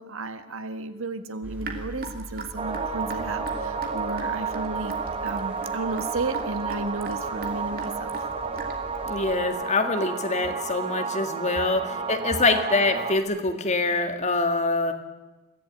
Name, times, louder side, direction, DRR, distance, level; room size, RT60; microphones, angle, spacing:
voice 1, 0.0-4.9 5.2-8.2, right 3 dB, 60° right, 9 dB, 1.6 m, -33 dB
sound 1, 1.4-9.4, equal, 5° right, 3.4 m, -43 dB
Raindrop / Drip, 1.6-9.0, right 3 dB, 40° right, 2.7 m, -38 dB
sound 2, 2.6-13.2, right 5 dB, 25° right, 1.4 m, -31 dB
voice 2, 9.0-14.9, left 3 dB, 30° left, 6 dB, 1.9 m, -25 dB
23.0 x 15.0 x 9.1 m, 1.1 s
head